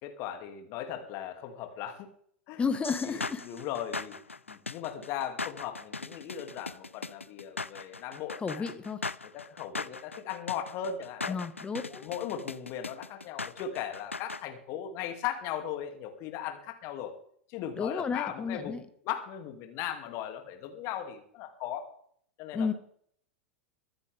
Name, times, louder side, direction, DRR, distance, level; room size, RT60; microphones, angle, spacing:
voice 1, 0.0-2.1 2.5-2.6 3.0-4.2 4.5-8.7 9.3-11.4 11.8-17.1 17.5-18.7 19.0-21.9 22.4-22.7, left 9 dB, 40° left, 4 dB, 2.5 m, -38 dB
voice 2, 2.6-3.4 8.4-9.0 11.3-12.1 17.8-18.8 22.5-22.7, left 5 dB, 15° left, 9 dB, 1.5 m, -32 dB
sound 1, 2.8-14.4, left 3 dB, 85° left, 0.4 m, -39 dB
23.5 x 9.8 x 3.5 m, 0.62 s
figure-of-eight pair, 95°, 7 cm